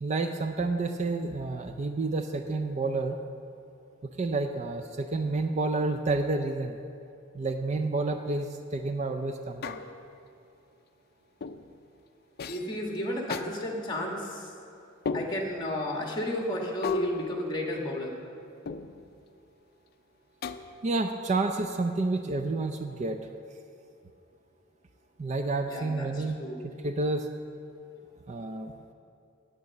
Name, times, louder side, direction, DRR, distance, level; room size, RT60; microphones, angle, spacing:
voice 1, 0.0-3.2 4.0-6.8 7.3-9.8 20.8-23.2 25.2-26.4 26.6-27.3 28.3-28.7, right 3 dB, 35° right, 6 dB, 0.4 m, -29 dB
sound 1, 9.6-10.2 11.4-11.7 12.4-12.8 13.3-13.5 15.0-15.7 16.8-18.1 18.6-19.2 20.4-21.0, left 4 dB, 50° left, 0.4 m, -35 dB
voice 2, 12.5-14.5 15.1-18.1 25.7-26.6, left 1 dB, 20° left, 0 dB, 1.5 m, -33 dB
9.4 x 8.9 x 7.2 m, 2.6 s
head